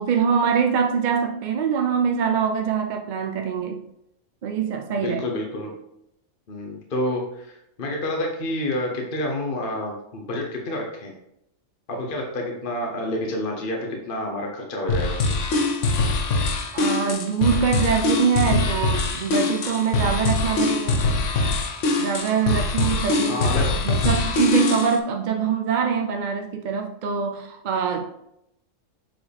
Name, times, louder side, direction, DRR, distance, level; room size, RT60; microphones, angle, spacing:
voice 1, 0.0-3.8 4.4-5.2 16.7-21.0 22.0-23.5 23.8-28.0, right 6 dB, 60° right, 3 dB, 0.5 m, -24 dB
voice 2, 5.0-5.7 6.5-11.1 11.9-15.1 23.3-23.7, left 1 dB, 40° left, 1 dB, 1.0 m, -28 dB
sound 1, 14.9-25.0, left 3 dB, 65° left, 1.1 m, -23 dB
7.5 x 4.7 x 3.4 m, 0.81 s
omnidirectional pair, 1.5 m